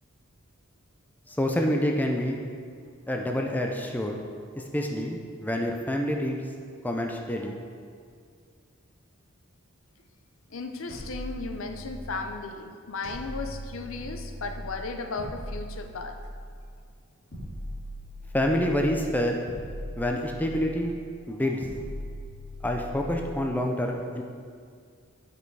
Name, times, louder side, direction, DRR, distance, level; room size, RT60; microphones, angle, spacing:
voice 1, 1.3-2.4 3.1-4.2 4.6-6.4 6.8-7.6 18.3-19.4 20.0-20.9 21.3-21.6 22.6-24.2, equal, 10° left, 1 dB, 0.4 m, -27 dB
voice 2, 10.5-16.2, left 3 dB, 65° left, 5 dB, 0.6 m, -35 dB
sound 1, 10.9-12.2 13.0-14.7 15.2-16.6 17.3-18.9 19.5-20.9 21.6-23.2, equal, 45° left, 2.2 m, -39 dB
8.8 x 5.3 x 4.7 m, 2.2 s
head